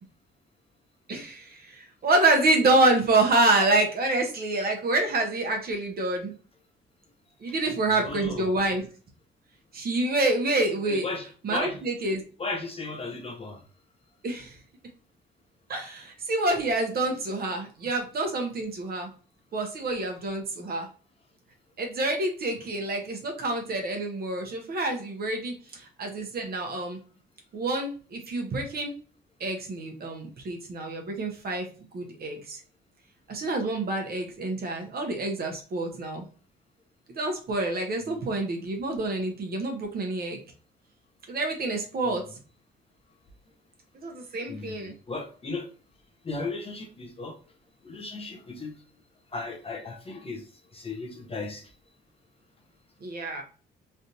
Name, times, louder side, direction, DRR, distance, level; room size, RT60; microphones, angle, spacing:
voice 1, 1.1-6.3 7.4-8.8 9.7-11.1 11.4-12.2 14.2-14.6 15.7-19.1 19.5-20.9 21.8-27.0 27.5-28.9 29.4-31.7 31.9-32.6 33.3-36.3 37.1-40.4 41.3-42.2 43.9-44.9 53.0-53.4, right 2 dB, 50° right, 1.0 m, -27 dB
voice 2, 8.0-8.6 10.9-11.8 12.4-13.6 38.0-38.2 42.0-42.2 44.5-45.7 46.2-47.4 47.8-48.7 49.3-50.4 50.7-51.7, left 3 dB, 30° left, 0.8 m, -36 dB
3.3 x 2.5 x 2.8 m
cardioid pair, 90°, 20 cm